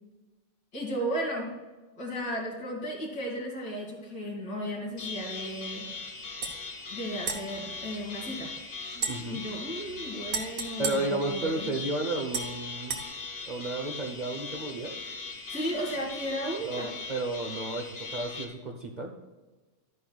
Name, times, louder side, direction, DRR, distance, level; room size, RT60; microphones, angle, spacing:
voice 1, 0.7-1.6 2.0-5.9 6.9-8.5 9.3-11.7 15.5-16.9, equal, 75° left, -3 dB, 3.1 m, -34 dB
sound 1, 5.0-18.4, left 4 dB, 40° left, 1.1 m, -40 dB
sound 2, 6.4-6.6 7.2-8.5 8.9-11.8 12.3-13.0, right 5 dB, 55° right, 1.3 m, -37 dB
voice 2, 9.1-9.4 10.8-13.0 13.5-15.0 16.6-19.1, right 2 dB, 35° right, 1 dB, 0.7 m, -32 dB
11.5 x 9.9 x 2.4 m, 1.2 s
omnidirectional pair, 1.9 m